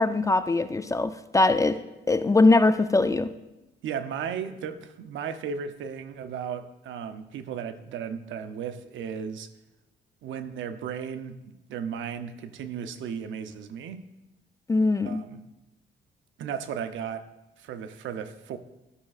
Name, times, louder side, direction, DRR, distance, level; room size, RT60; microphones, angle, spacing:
voice 1, 0.0-1.8 2.1-3.3 14.7-15.2, left 2 dB, 15° left, 11 dB, 0.3 m, -21 dB
voice 2, 3.8-9.5 10.2-14.0 15.0-15.4 16.4-17.3 17.6-18.6, right 7 dB, 75° right, 10 dB, 0.6 m, -35 dB
12.5 x 6.0 x 2.4 m, 0.99 s
cardioid pair, 90°, 20 cm